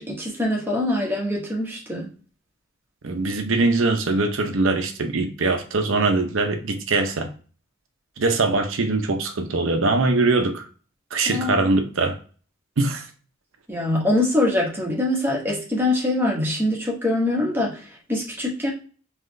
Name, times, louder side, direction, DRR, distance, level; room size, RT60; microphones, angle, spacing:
voice 1, 0.0-2.1 11.3-11.7 13.7-18.7, left 1 dB, 10° right, -3 dB, 1.2 m, -24 dB
voice 2, 3.0-7.3 8.2-10.6 11.1-12.2 12.8-13.1, right 3 dB, 75° right, 6 dB, 0.7 m, -22 dB
3.9 x 3.1 x 3.2 m, 0.39 s
head